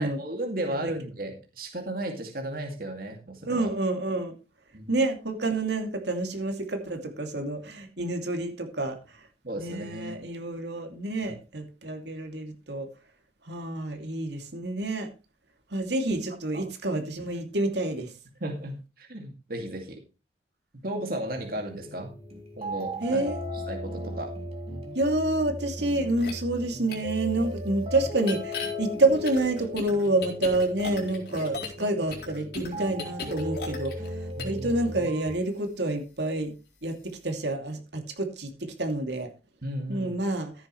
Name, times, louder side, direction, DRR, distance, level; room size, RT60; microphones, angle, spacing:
voice 1, 0.0-3.7 4.7-4.9 9.4-10.2 11.2-11.3 16.5-16.7 18.4-20.0 20.8-22.1 22.6-23.2 23.7-24.4 34.4-34.7 39.6-40.2, right 1 dB, 50° right, 2 dB, 2.3 m, -34 dB
voice 2, 3.5-4.3 4.9-9.2 9.6-12.9 13.4-15.1 15.7-18.1 23.0-23.4 24.9-36.5 36.8-39.3 39.9-40.5, right 2 dB, 70° right, 4 dB, 2.6 m, -28 dB
sound 1, 21.3-35.3, left 1 dB, 35° right, 2.8 m, -37 dB
sound 2, 26.2-26.3 26.9-27.0 28.2-28.7 29.3-31.8 32.1-34.1 34.4-34.6, left 4 dB, 60° left, 4.1 m, -36 dB
14.5 x 10.0 x 3.2 m, 0.30 s
head